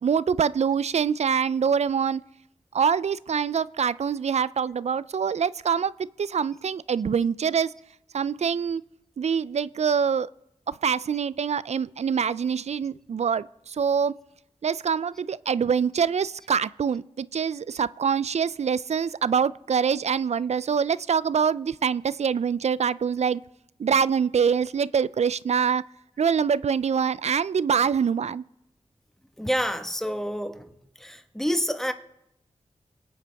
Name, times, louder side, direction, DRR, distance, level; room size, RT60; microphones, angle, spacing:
voice 1, 0.0-2.2 2.7-7.7 8.1-8.8 9.2-10.3 10.7-14.1 14.6-23.4 23.8-25.8 26.2-28.4, right 7 dB, 60° right, 0.4 m, -25 dB
voice 2, 29.4-30.6 31.0-31.9, equal, 5° left, 1.4 m, -28 dB
22.0 x 8.8 x 3.5 m
cardioid pair, 40°, 13 cm